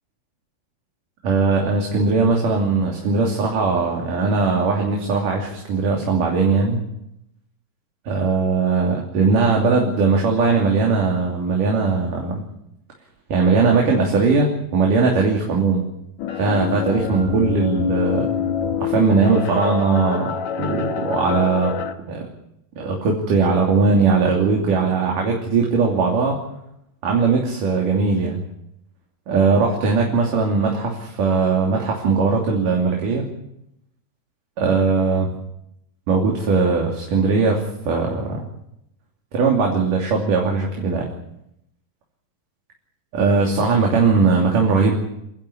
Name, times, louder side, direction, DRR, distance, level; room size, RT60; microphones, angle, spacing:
voice 1, 1.2-6.8 8.1-12.4 13.3-15.8 16.4-18.3 18.8-20.3 20.6-21.7 22.1-22.3 22.8-26.4 27.0-28.4 29.3-33.3 34.6-35.3 36.1-38.4 39.3-41.1 43.1-45.0, right 4 dB, 60° right, 0 dB, 4.4 m, -19 dB
sound 1, 16.2-21.9, left 8 dB, 60° left, 2.1 m, -26 dB
30.0 x 11.5 x 9.8 m, 0.81 s
omnidirectional pair, 4.4 m